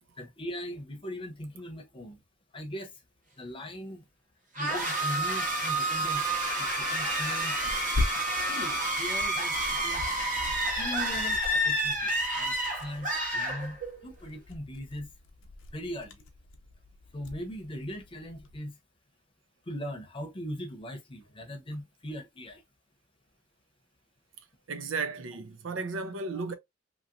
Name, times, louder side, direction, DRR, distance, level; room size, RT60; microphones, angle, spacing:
voice 1, 0.2-2.2 2.5-2.9 3.4-4.0 4.6-7.8 8.5-9.6 9.8-10.0 10.8-11.4 11.6-12.1 12.4-12.5 12.8-13.8 14.0-15.1 15.7-16.2 17.1-18.7 19.7-22.6 26.3-26.4, equal, 25° left, 0.7 m, -39 dB
sound 1, 4.5-14.1, right 1 dB, 40° right, 1.2 m, -29 dB
Tearing, 5.9-18.6, left 2 dB, 85° left, 0.7 m, -41 dB
voice 2, 24.7-26.5, right 4 dB, 75° right, 0.6 m, -34 dB
2.9 x 2.9 x 2.6 m
head